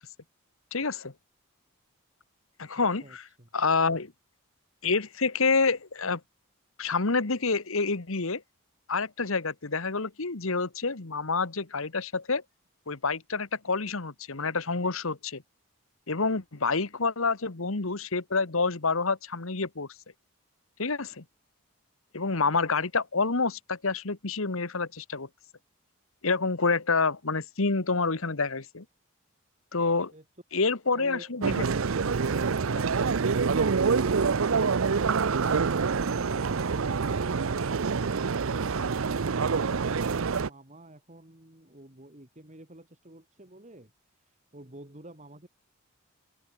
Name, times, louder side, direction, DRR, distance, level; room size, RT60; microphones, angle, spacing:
voice 1, 0.7-1.1 2.6-3.2 3.5-4.1 4.8-6.2 6.8-8.4 8.9-12.4 12.9-15.4 16.1-19.9 20.8-21.2 22.1-25.3 26.2-28.8 29.7-30.1 30.5-31.6, left 4 dB, 70° left, 1.5 m, -28 dB
voice 2, 2.7-3.5 30.1-30.2 35.9-43.9 44.5-45.5, right 1 dB, 35° right, 2.8 m, -49 dB
sound 1, 31.4-40.5, right 5 dB, 70° right, 0.6 m, -26 dB
open air
head